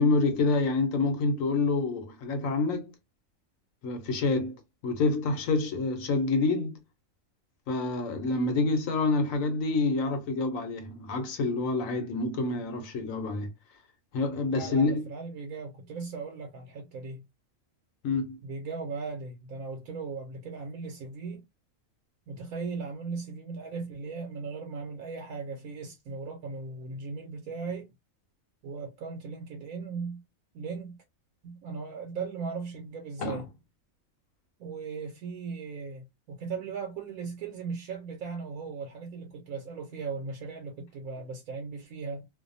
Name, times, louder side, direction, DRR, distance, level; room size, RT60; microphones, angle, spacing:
voice 1, 0.0-2.9 3.8-4.5 4.8-6.7 7.7-13.5 14.1-15.1 18.0-18.4 33.2-33.4, left 3 dB, 75° left, 1.1 m, -27 dB
voice 2, 14.5-17.2 18.4-21.4 22.3-27.9 28.6-30.2 30.5-31.0 31.4-33.4 34.6-42.3, right 4 dB, 85° right, 1.1 m, -38 dB
2.6 x 2.2 x 2.5 m
omnidirectional pair, 1.4 m